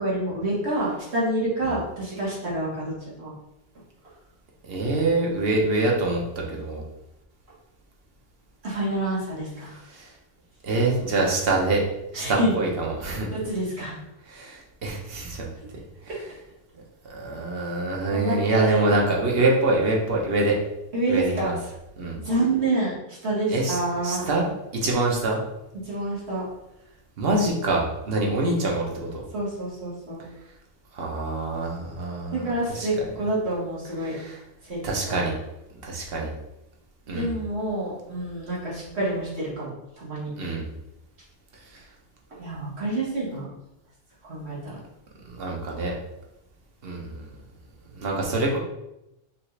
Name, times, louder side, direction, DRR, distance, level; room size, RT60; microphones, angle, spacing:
voice 1, 0.0-2.9 3.2-3.3 8.6-9.8 12.1-12.5 13.3-14.0 18.1-18.9 20.9-21.5 22.2-22.9 23.2-24.3 25.7-26.5 29.3-30.2 32.3-34.2 34.7-35.2 37.1-40.3 42.4-43.5 44.2-44.8, right 2 dB, 90° right, -6 dB, 1.9 m, -27 dB
voice 2, 4.6-6.8 9.9-10.1 10.6-11.8 12.1-13.3 14.3-15.5 16.1-16.2 17.0-20.6 21.1-21.5 22.0-22.2 23.5-23.8 24.0-24.5 24.8-25.4 27.2-29.2 30.9-33.1 34.0-34.4 34.8-35.3 35.8-36.3 37.1-37.3 40.4-40.7 45.3-45.9 46.8-47.3 48.0-48.6, right 2 dB, 65° right, -1 dB, 1.1 m, -25 dB
5.7 x 2.4 x 3.2 m, 0.89 s
omnidirectional pair, 1.1 m